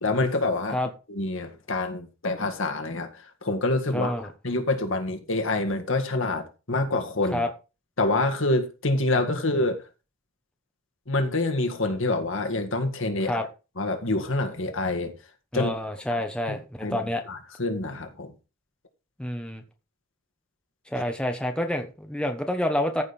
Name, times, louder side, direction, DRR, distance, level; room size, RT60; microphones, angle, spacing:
voice 1, 0.0-0.8 1.1-7.4 8.0-9.9 11.1-13.4 13.8-15.1 15.5-15.7 16.1-16.2 16.5-16.6 16.8-18.3, left 2 dB, 60° left, 1.9 m, -27 dB
voice 2, 3.9-4.3 7.3-7.5 13.2-13.4 15.5-17.2 19.2-19.6 20.9-23.0, left 1 dB, 5° left, 1.0 m, -28 dB
14.5 x 5.3 x 4.2 m
head